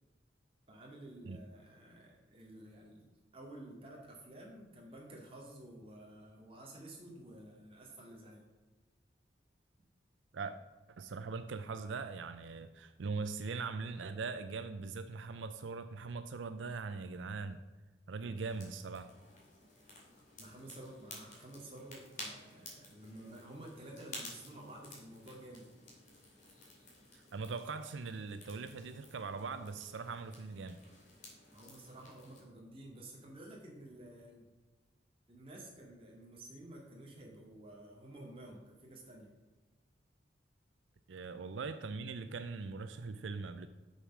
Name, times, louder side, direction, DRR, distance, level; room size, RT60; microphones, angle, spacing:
voice 1, 0.7-8.4 20.4-25.6 31.5-34.5 35.3-39.3, right 1 dB, 30° right, -2 dB, 2.1 m, -52 dB
voice 2, 11.0-17.6 18.1-19.1 27.1-30.8 41.1-43.7, right 4 dB, 85° right, 10 dB, 0.5 m, -41 dB
sound 1, 18.3-32.4, left 2 dB, 40° left, 2.6 m, -53 dB
6.6 x 6.4 x 6.0 m, 1.3 s
head